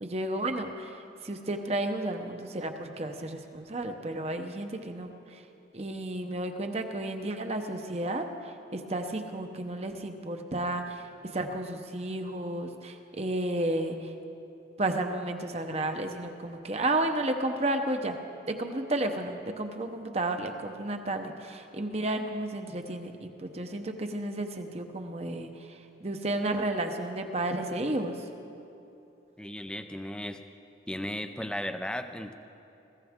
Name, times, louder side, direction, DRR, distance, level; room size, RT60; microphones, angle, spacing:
voice 1, 0.0-5.4 5.7-11.1 11.3-14.1 14.8-18.2 18.5-28.3, right 1 dB, 35° right, 5 dB, 0.9 m, -32 dB
voice 2, 29.4-30.4 30.9-32.3, left 1 dB, 5° left, 8 dB, 0.5 m, -35 dB
20.5 x 15.5 x 3.6 m, 2.8 s
head